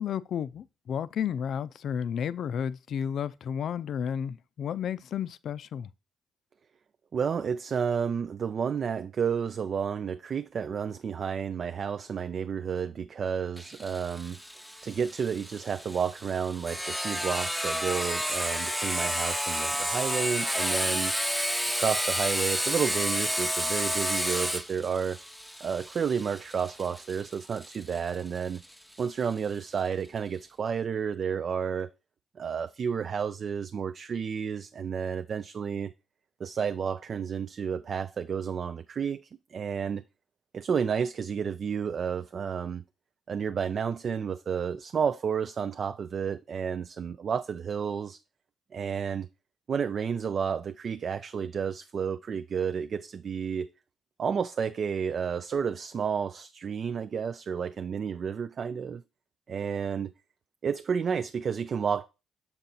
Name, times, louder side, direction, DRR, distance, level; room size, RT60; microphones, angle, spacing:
voice 1, 0.0-5.9, left 8 dB, 65° left, 0.4 m, -32 dB
voice 2, 7.1-14.4 14.8-21.1 21.8-25.2 25.6-28.6 29.0-31.9 32.4-35.9 36.4-40.0 40.5-42.8 43.3-48.2 48.7-49.3 49.7-53.7 54.2-59.0 59.5-60.1 60.6-62.1, right 7 dB, 50° right, 0.3 m, -31 dB
Sawing, 13.6-29.0, equal, ahead, 0.7 m, -31 dB
7.1 x 3.9 x 4.2 m
cardioid pair, 90°, 0 cm